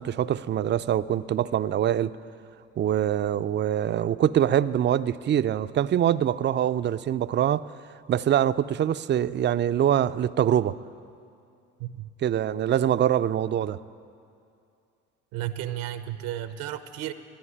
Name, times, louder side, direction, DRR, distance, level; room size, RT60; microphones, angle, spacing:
voice 1, 0.0-2.2 2.8-7.7 8.1-10.8 12.2-13.8, right 10 dB, 35° right, 0.4 m, -24 dB
voice 2, 11.8-12.1 15.3-17.1, right 12 dB, 80° right, 0.9 m, -33 dB
13.5 x 10.0 x 9.9 m
supercardioid pair, 80°, 33 cm